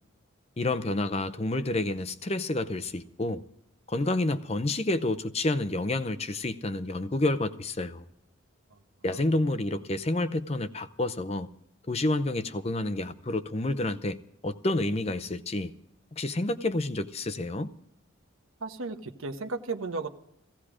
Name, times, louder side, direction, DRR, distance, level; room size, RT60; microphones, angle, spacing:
voice 1, 0.6-3.4 3.9-8.1 9.0-11.5 11.9-14.2 14.4-15.7 16.1-17.7, left 2 dB, 30° left, 0.6 m, -29 dB
voice 2, 18.6-20.1, right 3 dB, 85° right, 1.1 m, -35 dB
16.5 x 16.0 x 5.0 m
head